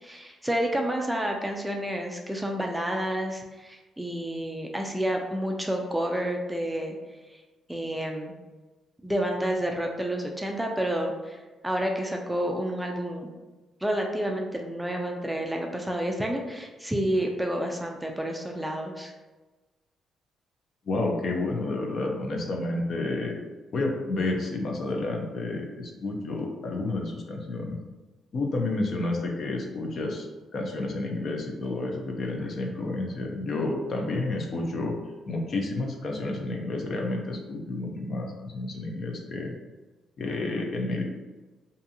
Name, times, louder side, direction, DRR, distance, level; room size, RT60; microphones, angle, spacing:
voice 1, 0.0-7.0 7.7-8.3 9.0-13.3 13.8-19.1, right 1 dB, 5° right, 1 dB, 0.3 m, -29 dB
voice 2, 20.9-23.3 23.7-27.8 28.3-30.3 30.5-34.9 35.3-39.5 40.2-41.0, left 2 dB, 55° left, 1 dB, 0.5 m, -30 dB
2.6 x 2.4 x 2.7 m, 1.2 s
cardioid pair, 90°, 0 cm